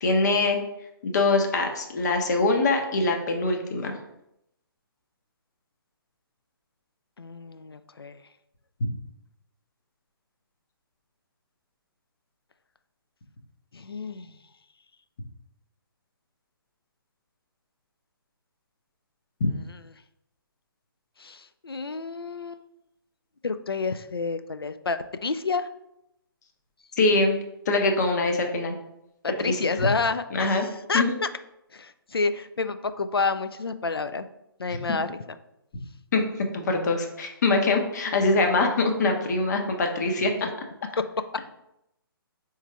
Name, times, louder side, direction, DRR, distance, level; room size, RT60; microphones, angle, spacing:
voice 1, 0.0-0.6 1.0-4.0 27.0-27.4 27.7-28.8 29.4-29.6 30.3-30.7 30.9-31.1 34.7-34.8 36.1-40.5, left 3 dB, 45° left, 3 dB, 0.8 m, -23 dB
voice 2, 7.2-8.2 13.7-14.4 19.7-19.8 21.2-22.6 23.4-25.7 29.4-31.3 31.7-34.3 34.6-35.4 40.4-40.5, left 4 dB, 80° left, 11 dB, 0.4 m, -29 dB
4.4 x 3.1 x 3.4 m, 0.83 s
figure-of-eight pair, 130°, 12 cm